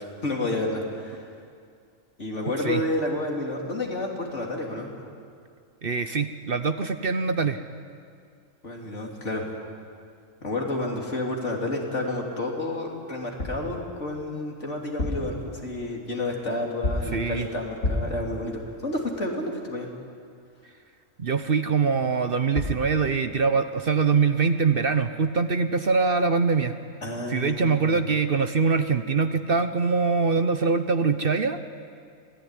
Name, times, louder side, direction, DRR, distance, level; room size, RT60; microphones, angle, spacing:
voice 1, 0.2-1.2 2.2-4.9 8.6-9.5 10.4-19.9 27.0-28.0, left 2 dB, 65° left, -1 dB, 3.7 m, -30 dB
voice 2, 5.8-7.6 17.1-17.5 21.2-26.7 27.3-31.6, right 5 dB, 50° right, 9 dB, 1.0 m, -23 dB
sound 1, 13.4-13.7 14.8-15.4 16.8-17.2 17.8-18.2 22.3-22.4 22.6-22.9, left 2 dB, 80° left, 3.5 m, -29 dB
25.5 x 17.5 x 10.0 m, 2.2 s
omnidirectional pair, 1.3 m